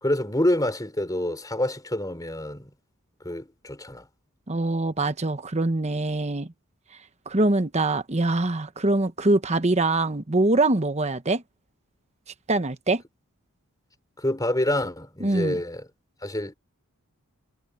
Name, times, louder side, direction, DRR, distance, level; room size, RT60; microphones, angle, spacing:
voice 1, 0.0-2.7 3.2-4.1 14.2-15.9 16.2-16.5, left 1 dB, 15° left, 4.0 m, -27 dB
voice 2, 4.5-6.5 7.3-11.4 12.5-13.0 15.2-15.6, right 2 dB, 30° right, 1.1 m, -23 dB
head